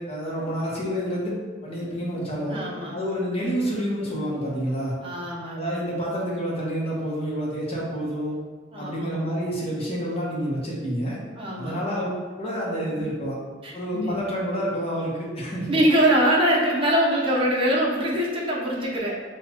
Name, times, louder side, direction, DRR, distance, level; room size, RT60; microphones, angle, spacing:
voice 1, 0.0-1.4 1.6-2.6 2.9-5.0 5.5-8.3 8.8-11.2 11.6-13.4 13.7-15.7, equal, 35° left, -4 dB, 1.0 m, -28 dB
voice 2, 2.5-2.9 5.0-5.8 8.7-9.1 11.4-11.8 13.6-14.2 15.7-19.1, right 1 dB, 30° right, -4 dB, 0.9 m, -23 dB
5.9 x 2.5 x 3.0 m, 1.5 s
head